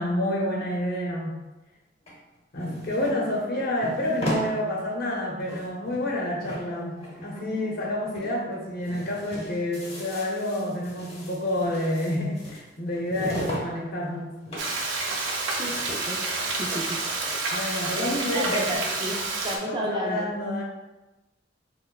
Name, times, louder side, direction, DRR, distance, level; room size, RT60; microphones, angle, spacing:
voice 1, 0.0-1.4 2.5-14.3 17.5-18.8 19.6-20.6, left 1 dB, 55° left, -2 dB, 0.8 m, -29 dB
sound 1, 2.1-4.5 4.9-5.0 5.3-6.1 6.4-7.9 8.1-8.3 8.6-13.7 13.9-14.8 15.1-15.2 15.5-16.2 16.4-18.8, equal, 35° left, 0.9 m, -37 dB
Frying (food), 14.6-19.6, right 3 dB, 85° right, 0.6 m, -29 dB
voice 2, 15.6-16.2 16.6-17.0 18.0-19.2 19.4-20.3, right 1 dB, 25° right, 0 dB, 0.4 m, -31 dB
5.7 x 2.2 x 2.3 m, 1.1 s
head